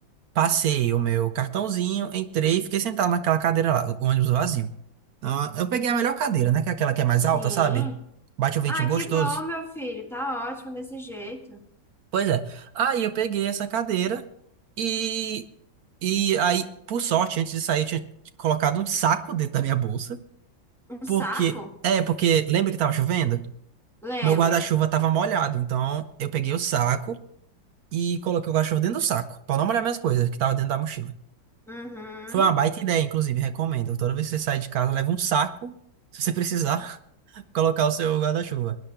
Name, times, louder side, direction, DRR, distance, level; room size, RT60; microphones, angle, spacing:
voice 1, 0.4-4.7 5.2-7.9 8.4-9.4 12.1-14.2 14.8-15.4 16.0-18.1 18.4-20.2 21.1-21.6 21.8-23.5 24.2-27.2 27.9-31.1 32.3-35.7 36.1-37.0 37.3-38.8, right 9 dB, 65° right, 10 dB, 0.9 m, -24 dB
voice 2, 7.3-7.9 8.7-11.6 20.9-21.7 24.0-24.7 31.7-32.5, equal, ahead, 1 dB, 1.5 m, -33 dB
22.0 x 10.0 x 3.4 m, 0.71 s
omnidirectional pair, 2.1 m